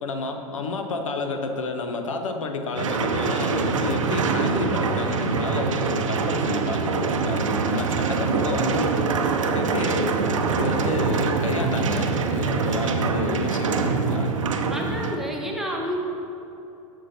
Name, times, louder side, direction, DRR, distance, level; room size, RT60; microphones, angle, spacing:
voice 1, 0.0-9.1 9.5-10.2 10.6-14.3, left 3 dB, 70° left, 5 dB, 0.8 m, -29 dB
sound 1, 2.8-15.2, right 5 dB, 70° right, 0.6 m, -24 dB
voice 2, 14.7-16.0, equal, ahead, -2 dB, 1.2 m, -29 dB
13.5 x 5.7 x 2.8 m, 2.9 s
figure-of-eight pair, 85°, 17 cm